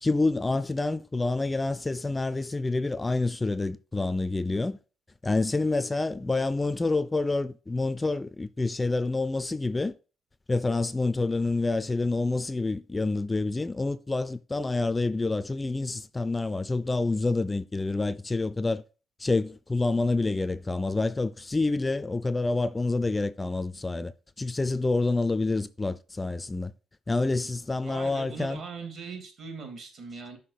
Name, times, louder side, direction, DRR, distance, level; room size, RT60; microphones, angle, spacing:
voice 1, 0.0-4.8 5.2-10.0 10.5-18.8 19.2-26.7 27.1-28.6, left 3 dB, 20° left, 0.4 m, -28 dB
voice 2, 27.8-30.4, right 5 dB, 60° right, 2.9 m, -40 dB
5.9 x 5.2 x 6.7 m
cardioid pair, 110°, 0 cm